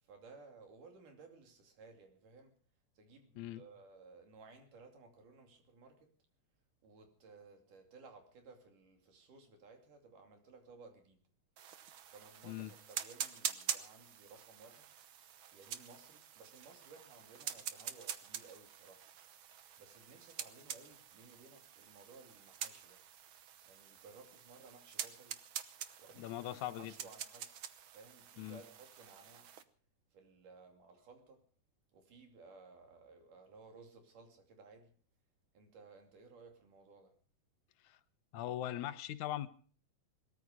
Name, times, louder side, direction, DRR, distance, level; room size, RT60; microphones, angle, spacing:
voice 1, 0.0-2.6 3.0-6.1 6.8-11.2 12.1-14.9 15.5-19.1 19.8-23.0 23.7-25.4 26.0-29.5 30.1-31.4 31.9-34.9 35.5-37.1, right 4 dB, 90° right, 4.3 m, -58 dB
sound 1, 11.6-29.6, right 9 dB, 70° right, 1.2 m, -46 dB
voice 2, 26.2-26.9 28.4-28.6 37.8-38.0 38.3-39.5, left 12 dB, 75° left, 2.2 m, -40 dB
20.5 x 13.5 x 5.0 m
omnidirectional pair, 3.6 m